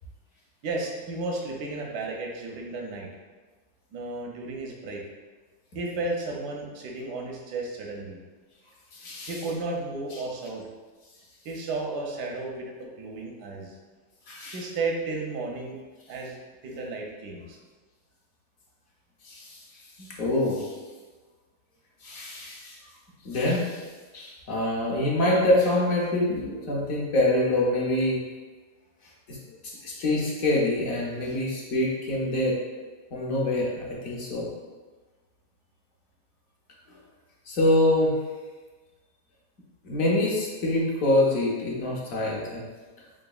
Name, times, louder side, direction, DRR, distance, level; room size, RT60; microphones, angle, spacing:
voice 1, 0.6-3.1 3.9-5.0 5.7-8.2 9.3-10.6 11.4-13.7 14.5-15.8 16.1-16.4 16.6-17.6, right 3 dB, 85° right, 0 dB, 1.3 m, -33 dB
voice 2, 8.9-9.3 14.3-14.6 19.2-19.4 20.0-20.7 22.0-22.8 23.2-23.8 24.1-28.2 29.3-29.4 29.6-32.5 33.1-34.5 37.5-38.1 39.8-42.7, left 1 dB, 65° left, -4 dB, 1.1 m, -25 dB
3.9 x 3.5 x 2.3 m, 1.3 s
omnidirectional pair, 1.7 m